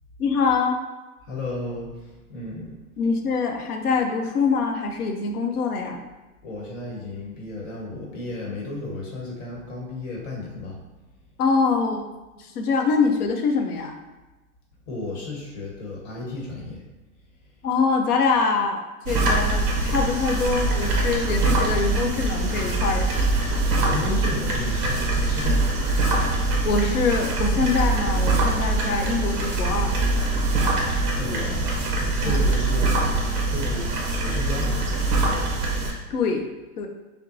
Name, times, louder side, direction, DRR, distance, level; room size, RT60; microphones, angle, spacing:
voice 1, 0.2-0.8 3.0-6.0 11.4-12.1 12.4-14.0 17.6-23.2 26.6-30.0 32.2-32.4 36.1-36.9, left 4 dB, 75° left, 4 dB, 0.8 m, -24 dB
voice 2, 1.3-2.7 6.4-10.8 14.9-16.8 23.8-25.9 31.1-34.9, left 2 dB, 55° left, -2 dB, 1.3 m, -33 dB
sound 1, 19.1-35.9, right 2 dB, 25° right, 0.6 m, -23 dB
5.7 x 2.2 x 2.6 m, 1.1 s
hypercardioid pair, 135°, 45 cm